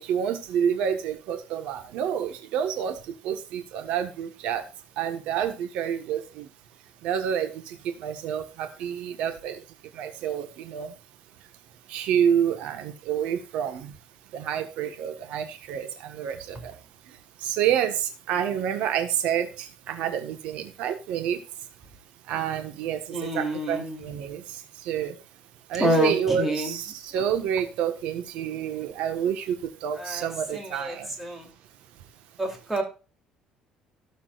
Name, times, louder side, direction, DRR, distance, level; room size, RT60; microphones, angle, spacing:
voice 1, 0.0-3.0 3.2-4.6 5.0-6.5 7.0-9.6 9.9-10.9 11.9-13.9 14.3-16.7 17.4-21.4 22.3-23.0 23.3-24.4 24.8-25.1 25.7-31.1, right 9 dB, 75° right, 8 dB, 1.6 m, -28 dB
voice 2, 23.1-24.0 25.8-26.8 27.2-27.3 29.9-31.5 32.4-32.8, right 1 dB, 10° right, 2 dB, 3.3 m, -28 dB
16.5 x 7.3 x 2.6 m, 0.32 s
cardioid pair, 145°, 2 cm